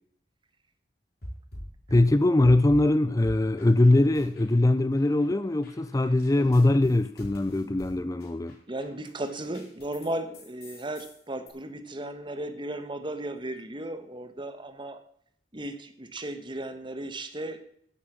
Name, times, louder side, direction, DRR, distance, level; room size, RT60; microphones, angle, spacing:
sound 1, 1.2-2.9 3.2-4.6 4.9-10.1 10.3-11.5, equal, 65° left, 5.7 m, -45 dB
voice 1, 1.9-8.6, left 2 dB, 20° left, 0.4 m, -22 dB
voice 2, 6.4-6.7 8.7-15.0 15.5-17.6, right 1 dB, 30° right, 1.3 m, -35 dB
11.0 x 8.3 x 7.4 m
head